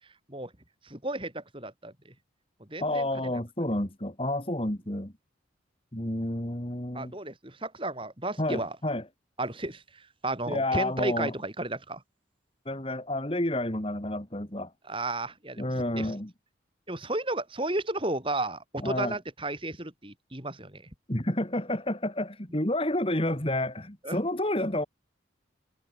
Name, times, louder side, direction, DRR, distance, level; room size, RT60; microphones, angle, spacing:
voice 1, 0.8-1.9 2.7-3.3 6.9-8.8 9.4-12.0 14.9-16.2 16.9-20.9 24.0-24.2, right 2 dB, 25° right, 4.6 m, -33 dB
voice 2, 2.8-5.1 5.9-7.1 8.4-9.0 10.5-11.3 12.7-14.7 15.6-16.3 18.8-19.2 21.1-24.8, left 1 dB, 30° left, 2.4 m, -30 dB
head